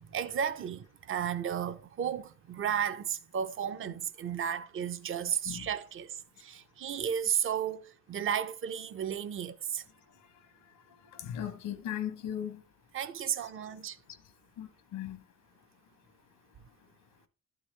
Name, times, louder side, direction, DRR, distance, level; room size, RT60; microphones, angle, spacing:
voice 1, 0.0-9.8 12.9-14.0, right 8 dB, 45° right, 0.6 m, -33 dB
voice 2, 10.9-12.6 14.6-15.2, left 10 dB, 85° left, 1.0 m, -38 dB
11.5 x 4.8 x 3.2 m
cardioid pair, 90°, 30 cm